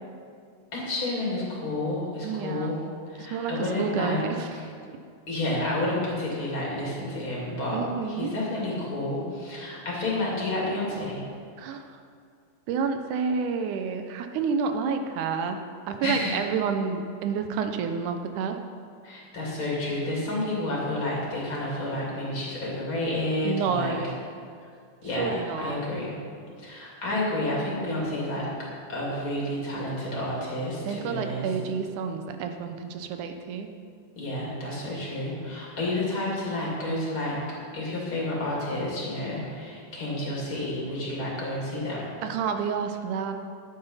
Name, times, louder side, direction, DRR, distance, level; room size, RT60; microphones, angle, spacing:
voice 1, 0.7-2.8 3.1-4.3 4.5-4.6 5.3-11.2 16.0-16.4 19.0-23.9 25.0-26.1 26.6-28.5 28.9-31.5 34.2-37.4 37.7-42.0, left 1 dB, 40° left, -5 dB, 3.4 m, -30 dB
voice 2, 2.2-2.8 3.2-4.5 7.7-8.3 11.6-11.9 12.7-18.6 23.4-24.2 25.2-25.8 30.9-33.8 42.2-43.3, right 6 dB, 85° right, 7 dB, 2.3 m, -29 dB
12.0 x 9.2 x 5.6 m, 2.2 s
omnidirectional pair, 3.5 m